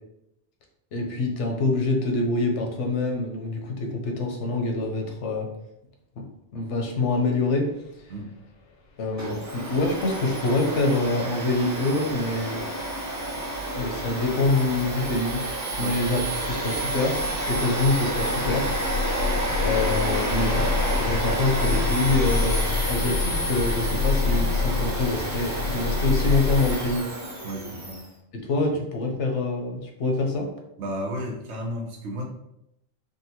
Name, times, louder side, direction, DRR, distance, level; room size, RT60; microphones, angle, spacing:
voice 1, 0.9-5.5 6.2-6.3 6.5-7.7 9.0-12.6 13.8-15.4 15.8-17.2 17.5-18.7 19.6-27.0 28.3-30.5, left 2 dB, 85° left, 2 dB, 1.0 m, -25 dB
sound 1, 9.2-9.4 9.7-27.0, left 4 dB, 65° left, 0.7 m, -30 dB
Domestic sounds home sounds, 9.2-28.0, right 1 dB, 30° right, 0.3 m, -30 dB
voice 2, 27.4-28.1 28.7-28.8 30.8-32.2, equal, 75° right, -1 dB, 1.0 m, -33 dB
3.8 x 2.2 x 2.8 m, 0.82 s
omnidirectional pair, 1.2 m